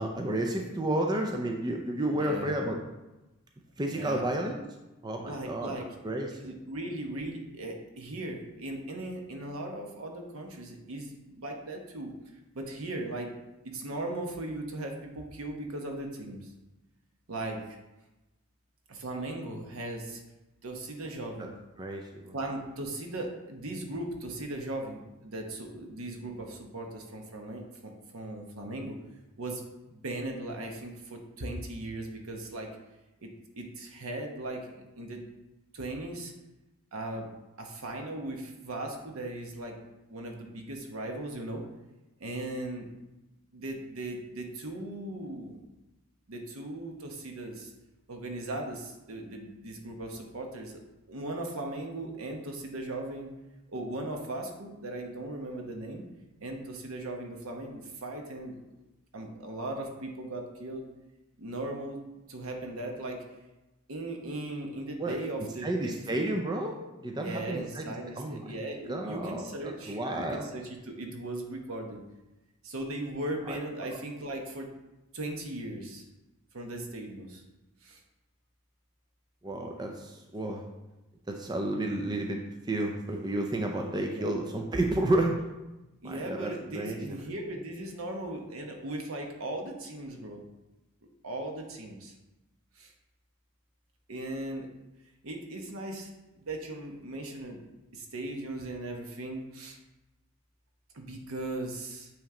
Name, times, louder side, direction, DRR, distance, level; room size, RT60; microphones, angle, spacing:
voice 1, 0.0-2.8 3.8-4.6 5.0-5.7 6.0-6.5 21.4-21.5 21.8-22.3 65.0-65.2 65.6-67.9 68.2-68.6 68.9-69.4 69.9-70.5 73.5-73.6 79.4-80.6 81.3-82.4 82.7-85.4 86.0-87.2, right 1 dB, 20° right, 2 dB, 0.4 m, -31 dB
voice 2, 2.1-2.5 3.9-4.2 5.3-12.1 12.5-13.3 13.6-16.5 17.3-17.8 18.9-20.2 20.6-21.5 22.3-29.0 29.4-32.7 33.2-33.3 33.6-35.2 35.7-36.3 36.9-37.3 37.6-39.8 40.1-41.6 42.2-42.9 43.5-45.6 46.3-47.7 48.1-50.8 51.1-53.3 53.7-56.0 56.4-58.6 59.1-60.9 61.4-62.0 62.3-63.2 63.9-65.9 67.2-72.0 72.6-74.7 75.1-76.0 76.5-77.4 77.8-78.0 84.1-84.3 86.0-90.4 91.2-92.1 92.8-92.9 94.1-94.7 95.2-96.1 96.4-97.6 97.9-99.8 100.9-102.1, right 1 dB, 80° right, 2 dB, 1.0 m, -38 dB
8.7 x 3.2 x 3.7 m, 1.0 s
head